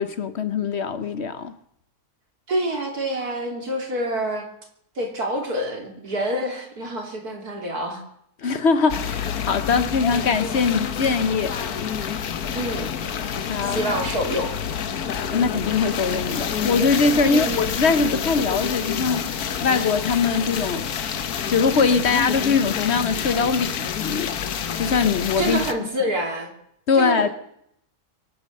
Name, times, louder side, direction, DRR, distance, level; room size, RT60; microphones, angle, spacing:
voice 1, 0.0-1.5 8.4-11.6 13.5-13.8 15.3-19.3 19.6-20.9 21.5-24.4 24.8-25.6 26.9-27.3, left 5 dB, 55° left, 0.9 m, -22 dB
voice 2, 2.5-4.5 5.0-8.0 12.5-12.9 13.6-14.5 17.1-17.6 25.4-26.5 26.9-27.3, right 1 dB, 90° right, 3.6 m, -27 dB
sound 1, 8.9-25.7, left 8 dB, 80° left, 1.5 m, -28 dB
23.0 x 8.8 x 6.6 m
omnidirectional pair, 1.6 m